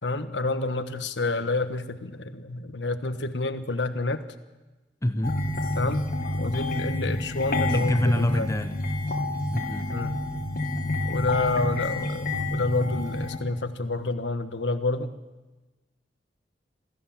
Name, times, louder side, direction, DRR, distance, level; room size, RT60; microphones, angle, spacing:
voice 1, 0.0-4.2 5.8-6.0 6.3-8.5 9.9-10.1 11.0-15.1, left 2 dB, 85° left, 9 dB, 1.4 m, -28 dB
voice 2, 5.0-5.4 7.7-8.7 9.5-9.9, left 1 dB, 15° left, 9 dB, 0.8 m, -26 dB
sound 1, 5.2-13.4, left 1 dB, 55° left, 2.1 m, -29 dB
27.0 x 14.0 x 7.5 m, 1.2 s
head